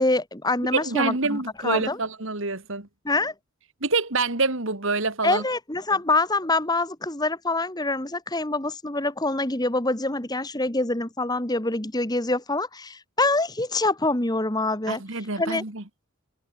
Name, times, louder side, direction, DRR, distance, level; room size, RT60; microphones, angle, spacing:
voice 1, 0.0-2.0 3.0-3.3 5.2-15.0 15.4-15.6, left 2 dB, 15° left, 1.6 m, -25 dB
voice 2, 0.7-2.9 3.8-5.4 14.9-15.8, right 3 dB, 60° right, 2.4 m, -26 dB
head